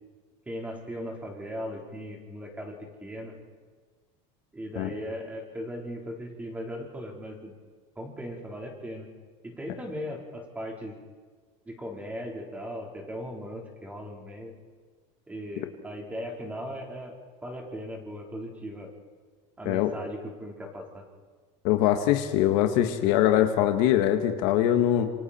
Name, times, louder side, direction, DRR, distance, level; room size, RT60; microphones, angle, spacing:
voice 1, 0.5-3.4 4.5-7.5 8.0-9.1 9.4-11.0 11.7-14.5 15.3-17.1 17.4-18.9 19.6-21.0, equal, 10° right, 0 dB, 4.1 m, -38 dB
voice 2, 21.6-25.1, left 12 dB, 70° left, 6 dB, 1.8 m, -22 dB
27.0 x 25.5 x 4.5 m, 1.5 s
cardioid pair, 145°, 14 cm